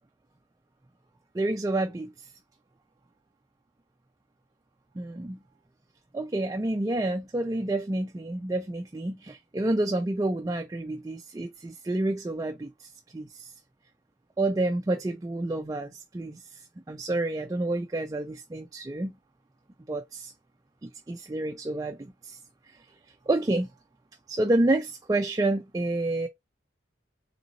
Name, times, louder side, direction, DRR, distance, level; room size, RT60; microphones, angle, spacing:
voice 1, 1.3-2.3 5.0-5.4 6.1-13.5 14.4-16.6 16.9-19.1 19.9-20.3 20.8-22.4 22.6-22.8 23.3-23.7 24.3-26.3, right 2 dB, 20° right, 0.3 m, -29 dB
3.6 x 2.7 x 3.9 m
head